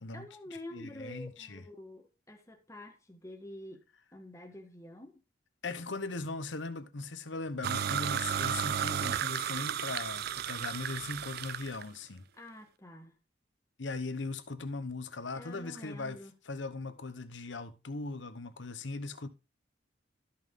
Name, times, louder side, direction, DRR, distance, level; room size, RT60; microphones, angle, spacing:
voice 1, 0.1-3.8 4.1-5.2 12.4-13.1 15.3-16.3, left 1 dB, 15° left, 1.5 m, -48 dB
voice 2, 0.7-1.6 5.6-12.2 13.8-16.2 16.5-19.3, left 3 dB, 75° left, 1.0 m, -39 dB
sound 1, 7.6-11.8, right 8 dB, 55° right, 0.4 m, -33 dB
13.0 x 5.7 x 3.7 m
head